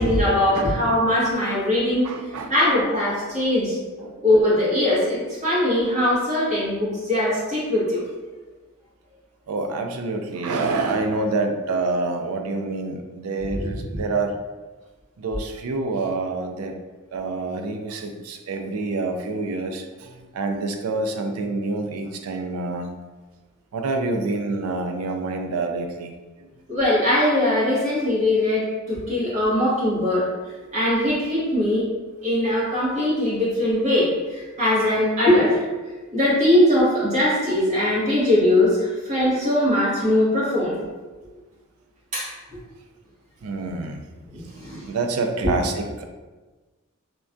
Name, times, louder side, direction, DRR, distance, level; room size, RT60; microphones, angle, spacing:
voice 1, 0.0-2.1 2.5-3.8 4.2-8.0 13.5-13.8 26.7-30.2 30.7-31.9 32.2-35.6 36.1-40.8 42.1-42.3 44.3-44.8, left 1 dB, 35° right, -8 dB, 1.2 m, -21 dB
voice 2, 2.0-2.5 4.0-4.1 9.5-14.3 15.2-16.7 17.1-19.8 20.3-22.9 23.7-26.1 43.4-44.0 44.9-46.0, right 3 dB, 85° right, 5 dB, 0.4 m, -27 dB
3.3 x 2.2 x 2.5 m, 1.2 s
head